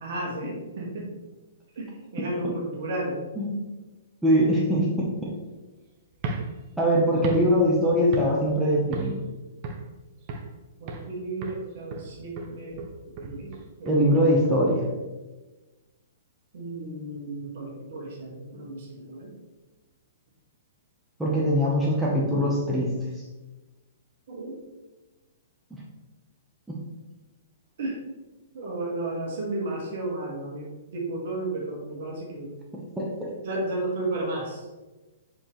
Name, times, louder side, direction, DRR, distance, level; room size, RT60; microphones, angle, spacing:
voice 1, 0.0-1.1 1.8-1.9 2.1-3.2 4.4-4.6 10.8-12.8 13.2-14.2 16.5-19.3 24.3-24.6 27.8-28.0 28.5-32.5 33.4-34.6, right 2 dB, 50° right, -2 dB, 1.9 m, -33 dB
voice 2, 4.2-5.3 6.8-9.2 13.9-14.9 21.2-22.9 26.7-26.8 33.0-33.3, equal, 5° right, -5 dB, 1.1 m, -22 dB
sound 1, 6.1-8.6 8.9-9.3 9.6-10.6 10.9-11.2 11.4-14.5, right 3 dB, 35° right, 0.8 m, -36 dB
7.3 x 4.7 x 3.2 m, 1.2 s
figure-of-eight pair, 115°, 0 cm